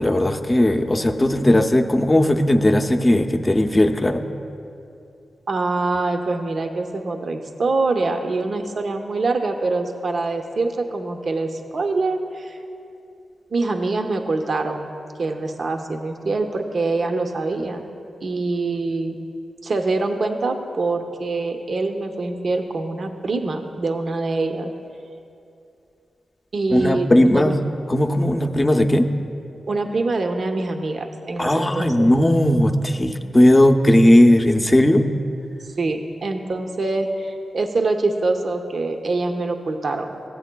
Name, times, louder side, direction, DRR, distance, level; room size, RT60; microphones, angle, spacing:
voice 1, 0.0-4.2 26.7-27.6 27.9-29.1 31.4-35.1, left 1 dB, 20° left, 6 dB, 0.6 m, -17 dB
voice 2, 5.5-12.6 13.5-14.9 15.2-17.9 18.2-19.1 19.6-24.7 26.5-27.5 29.7-32.1 35.6-40.1, right 3 dB, 60° right, 5 dB, 0.6 m, -24 dB
15.0 x 8.2 x 2.2 m, 2.6 s
cardioid pair, 65°, 0 cm